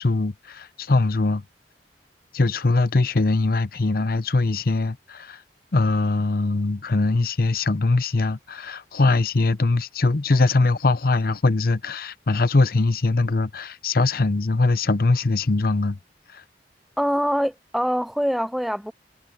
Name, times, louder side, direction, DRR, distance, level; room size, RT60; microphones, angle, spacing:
voice 1, 0.0-1.4 2.3-5.4 5.7-16.0, left 3 dB, 55° left, 0.7 m, -21 dB
voice 2, 17.0-18.9, equal, ahead, 0.3 m, -24 dB
head